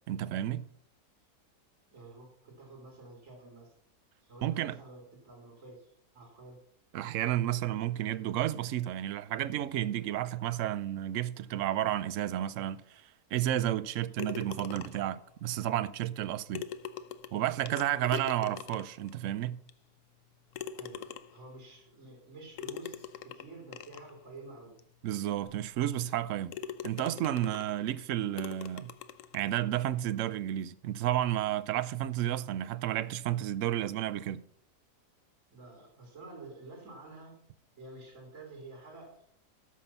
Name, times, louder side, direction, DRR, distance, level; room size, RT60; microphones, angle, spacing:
voice 1, 0.1-0.7 4.4-4.8 6.9-13.0 13.3-16.7 17.3-19.6 25.0-26.5 26.8-28.9 29.3-34.4, right 12 dB, 70° right, 0.7 m, -32 dB
voice 2, 1.9-3.7 4.2-6.6 17.6-18.6 20.7-24.8 27.9-28.1 29.2-29.3 35.5-37.4 37.8-39.2, right 2 dB, 50° right, 3.1 m, -50 dB
sound 1, 14.2-15.2 16.2-16.3 16.5-19.1 19.7-19.8 20.5-21.5 22.6-24.1 24.8-24.9 25.4-25.5 26.0-26.2 26.5-27.8 28.4-29.5, left 9 dB, 65° left, 0.9 m, -42 dB
13.5 x 5.6 x 5.6 m
omnidirectional pair, 1.8 m